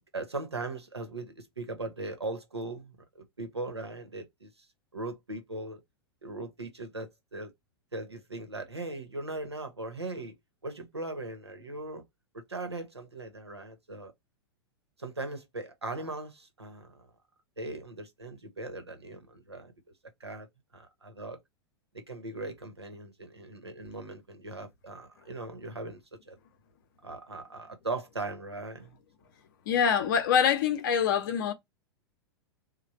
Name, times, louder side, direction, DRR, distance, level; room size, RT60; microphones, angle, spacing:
voice 1, 0.1-4.7 4.9-5.8 6.2-7.5 7.9-10.4 10.6-12.0 12.3-14.1 15.0-17.1 17.6-19.7 20.2-20.5 20.7-21.4 21.9-26.0 26.3-26.4 27.0-28.9, right 2 dB, 85° right, 0.9 m, -39 dB
voice 2, 29.7-31.5, left 7 dB, 50° left, 0.7 m, -25 dB
3.2 x 2.2 x 4.1 m
figure-of-eight pair, 95°, 13 cm